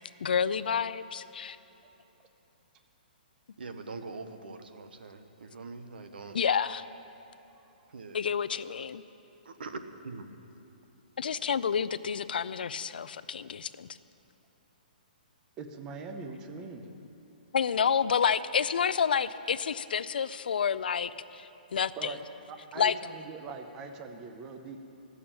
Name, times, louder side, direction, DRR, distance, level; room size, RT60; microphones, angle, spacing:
voice 1, 0.2-1.6 6.3-6.8 8.1-9.0 11.2-13.9 17.5-22.1 22.8-23.0, left 7 dB, 70° left, 15 dB, 0.4 m, -29 dB
voice 2, 3.6-6.4 7.9-8.2 9.4-10.3, right 3 dB, 75° right, 8 dB, 1.0 m, -43 dB
voice 3, 15.6-16.9 22.0-22.2 22.5-24.9, right 4 dB, 10° right, 6 dB, 0.4 m, -42 dB
14.0 x 6.9 x 8.7 m, 2.9 s
hypercardioid pair, 180°, 5 cm